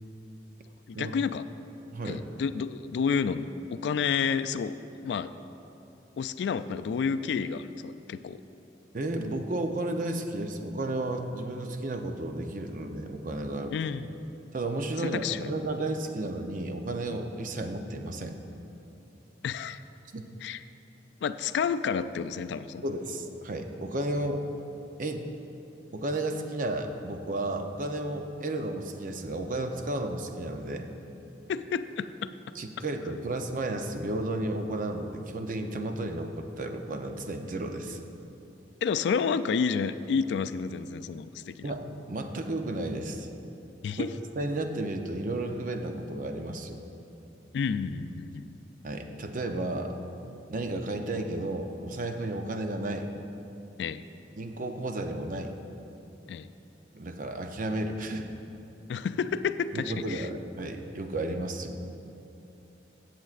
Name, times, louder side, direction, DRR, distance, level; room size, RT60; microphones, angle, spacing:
voice 1, 0.9-1.4 2.0-4.8 5.0-5.3 6.2-8.4 13.7-14.1 15.0-15.5 19.4-19.8 20.4-20.6 21.2-22.8 31.5-32.3 38.8-41.5 43.8-44.1 47.5-48.5 53.8-54.0 56.3-56.5 58.9-60.3, left 6 dB, 75° left, 13 dB, 0.3 m, -30 dB
voice 2, 1.9-2.2 8.9-13.7 14.5-18.4 20.1-20.2 22.8-24.5 25.0-25.3 25.9-30.9 32.5-38.0 41.6-43.3 44.0-44.1 44.4-46.8 48.8-49.9 50.5-53.1 54.4-55.5 56.9-58.3 59.7-61.8, right 2 dB, 45° right, 5 dB, 0.6 m, -33 dB
16.0 x 7.4 x 2.4 m, 2.9 s
head